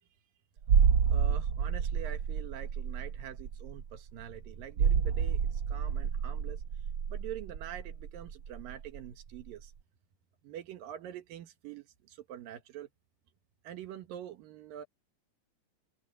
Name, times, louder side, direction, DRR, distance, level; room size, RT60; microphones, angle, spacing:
sound 1, 0.6-9.1 9.3-9.5, right 7 dB, 60° right, 1.4 m, -29 dB
voice 1, 1.1-6.6 7.1-9.7 10.4-12.9 13.6-14.9, right 10 dB, 80° right, 3.1 m, -45 dB
omnidirectional pair, 3.9 m